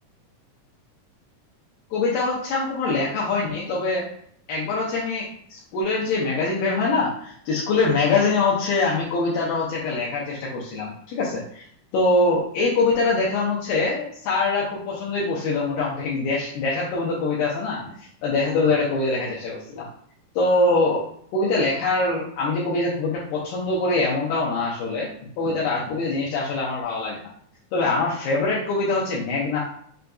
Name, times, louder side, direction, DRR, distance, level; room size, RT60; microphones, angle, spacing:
voice 1, 1.9-4.1 4.5-11.6 11.9-19.9 20.4-21.1 21.3-27.2 27.7-29.6, left 3 dB, 80° left, -6 dB, 2.3 m, -24 dB
5.6 x 2.6 x 2.3 m, 0.63 s
omnidirectional pair, 3.9 m